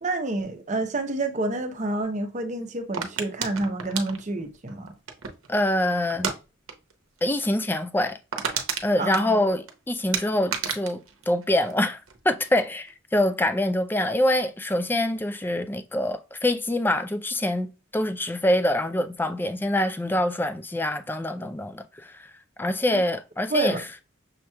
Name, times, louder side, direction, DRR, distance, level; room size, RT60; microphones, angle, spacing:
voice 1, 0.0-4.9 9.0-9.4 22.9-23.0 23.5-23.8, right 2 dB, 35° right, 0.7 m, -28 dB
sound 1, 2.9-5.5 6.1-6.4 6.7-6.9 7.2-7.3 7.7-7.8 8.0-9.7 10.1-12.2 12.4-12.9, right 7 dB, 85° right, 0.8 m, -31 dB
voice 2, 5.5-6.3 7.2-8.2 8.8-12.0 12.3-22.3 22.6-23.8, left 1 dB, 10° left, 0.3 m, -25 dB
6.3 x 2.9 x 2.3 m
head